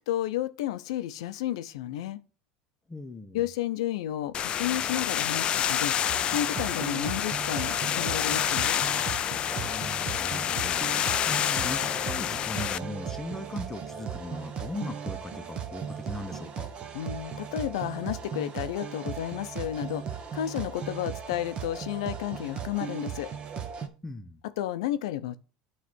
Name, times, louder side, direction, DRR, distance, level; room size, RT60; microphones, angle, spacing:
voice 1, 0.0-2.2 3.3-5.9 6.3-8.8 16.9-20.0 20.3-23.3 24.6-25.4, left 12 dB, 85° left, 0.6 m, -32 dB
voice 2, 2.9-3.4 9.6-16.7 24.0-24.4, left 2 dB, 10° left, 0.8 m, -39 dB
sound 1, 4.3-12.8, left 9 dB, 35° left, 0.4 m, -28 dB
sound 2, 6.1-23.9, right 7 dB, 35° right, 0.9 m, -37 dB
sound 3, 10.7-15.8, right 1 dB, 60° right, 1.5 m, -47 dB
9.4 x 3.2 x 6.1 m
supercardioid pair, 130°, 3 cm